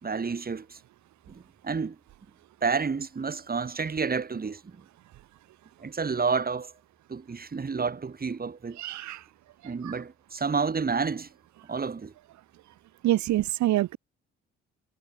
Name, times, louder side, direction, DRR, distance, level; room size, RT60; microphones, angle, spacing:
voice 1, 0.0-0.8 1.3-2.0 2.6-4.8 5.8-6.7 7.1-8.8 9.6-11.3 11.7-12.1, right 5 dB, 30° right, 2.7 m, -30 dB
voice 2, 8.8-9.2 9.8-9.9 13.0-14.0, right 15 dB, 70° right, 1.7 m, -26 dB
supercardioid pair, 60°, 30 cm